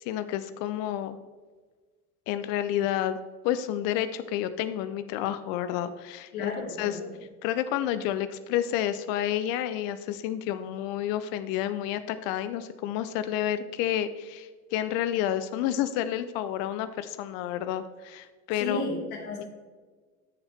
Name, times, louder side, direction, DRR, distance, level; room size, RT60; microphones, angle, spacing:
voice 1, 0.0-1.2 2.3-3.2 3.4-6.5 6.8-7.0 7.4-18.8, left 11 dB, 50° left, 12 dB, 0.6 m, -30 dB
voice 2, 6.3-7.1 18.6-19.5, left 2 dB, 70° left, -1 dB, 2.5 m, -33 dB
13.0 x 7.0 x 3.5 m, 1.4 s
figure-of-eight pair, 65°, 44 cm